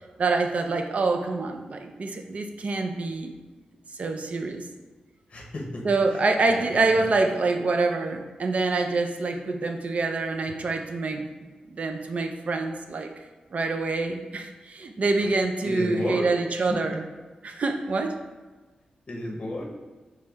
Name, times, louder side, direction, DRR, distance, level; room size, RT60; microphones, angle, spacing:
voice 1, 0.2-3.3 3.9-4.6 5.8-11.3 11.7-13.1 13.5-17.1 17.4-18.2, right 3 dB, 55° right, 5 dB, 0.4 m, -26 dB
voice 2, 5.3-6.2 6.5-6.6 6.9-7.1 15.2-15.3 15.6-16.3 16.9-17.0 19.1-19.6, left 1 dB, 45° left, -1 dB, 0.7 m, -33 dB
6.5 x 3.2 x 2.3 m, 1.3 s
wide cardioid pair, 105°, 3 cm